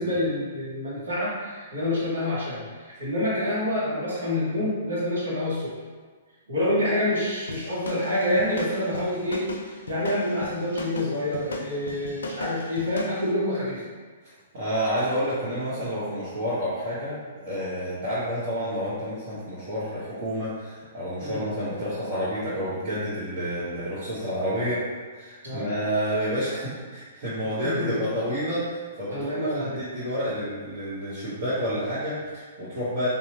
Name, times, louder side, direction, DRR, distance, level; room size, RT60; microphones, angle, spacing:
voice 1, 0.0-5.7 6.5-13.8 21.2-21.4 25.4-25.6 27.6-28.0 29.1-29.8, left 1 dB, 75° right, -9 dB, 1.1 m, -27 dB
sound 1, 7.5-13.2, left 2 dB, 75° left, 0.4 m, -36 dB
voice 2, 14.2-24.8 25.1-33.1, equal, 50° right, -11 dB, 1.0 m, -29 dB
2.8 x 2.3 x 2.9 m, 1.5 s
hypercardioid pair, 120°, 0 cm